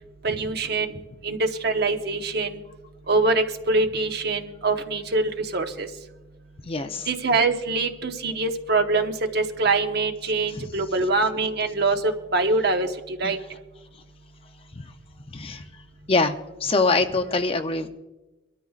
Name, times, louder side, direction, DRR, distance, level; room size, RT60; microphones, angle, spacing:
voice 1, 0.2-2.6 3.1-5.9 7.1-13.4, right 3 dB, 50° right, 5 dB, 1.1 m, -24 dB
voice 2, 6.7-7.1 10.6-10.7 13.2-13.3 14.8-14.9 15.3-15.6 16.1-16.4 16.6-17.9, left 3 dB, 30° left, 7 dB, 0.6 m, -24 dB
24.0 x 13.0 x 2.4 m, 1.1 s
head